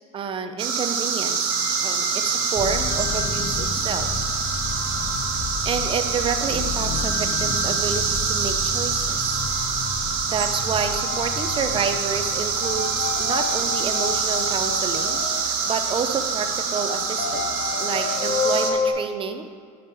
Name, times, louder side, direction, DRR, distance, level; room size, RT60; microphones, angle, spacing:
voice 1, 0.1-4.1 5.6-9.4 10.3-19.4, right 6 dB, 25° right, 8 dB, 0.7 m, -29 dB
sound 1, 0.6-18.7, right 5 dB, 85° right, 1.4 m, -25 dB
sound 2, 1.5-18.9, left 5 dB, 40° left, 0.9 m, -33 dB
sound 3, 2.6-16.5, left 5 dB, 20° left, 0.5 m, -34 dB
11.5 x 5.1 x 4.6 m, 2.1 s
supercardioid pair, 130°, 19 cm